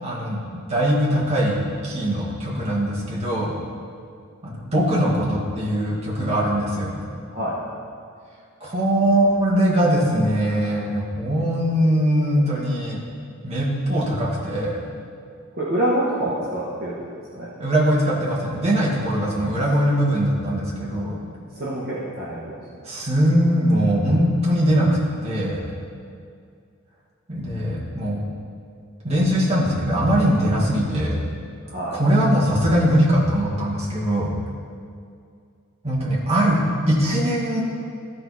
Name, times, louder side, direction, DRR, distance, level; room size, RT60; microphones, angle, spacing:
voice 1, 0.0-3.6 4.4-7.0 8.6-13.0 13.4-14.8 17.6-21.2 22.9-24.9 25.2-25.6 27.3-28.2 29.0-31.2 31.9-34.3 35.8-37.6, equal, 30° right, -5 dB, 1.7 m, -21 dB
voice 2, 7.3-7.7 15.6-16.9 17.3-17.5 21.5-22.5 31.7-32.0, right 1 dB, 45° right, -8 dB, 1.4 m, -26 dB
14.0 x 4.7 x 4.2 m, 2.3 s
head